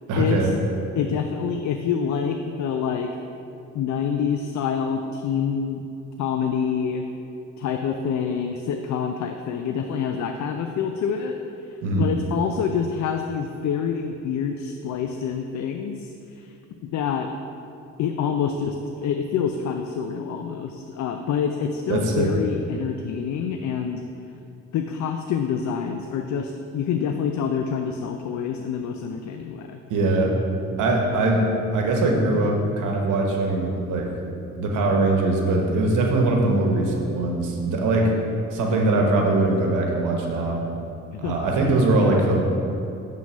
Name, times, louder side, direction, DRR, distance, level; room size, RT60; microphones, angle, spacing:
voice 1, 0.1-0.5 11.8-12.1 21.9-22.3 29.9-30.3 30.8-34.1 34.5-38.1 38.5-40.6 41.2-42.4, right 2 dB, 85° right, 0 dB, 1.1 m, -21 dB
voice 2, 1.0-3.1 3.7-5.8 6.2-7.0 7.6-11.4 12.0-16.5 16.9-17.3 18.0-24.0 24.7-29.8 41.1-41.3, left 7 dB, 70° left, 5 dB, 0.5 m, -26 dB
7.3 x 3.8 x 6.2 m, 2.7 s
cardioid pair, 90°, 30 cm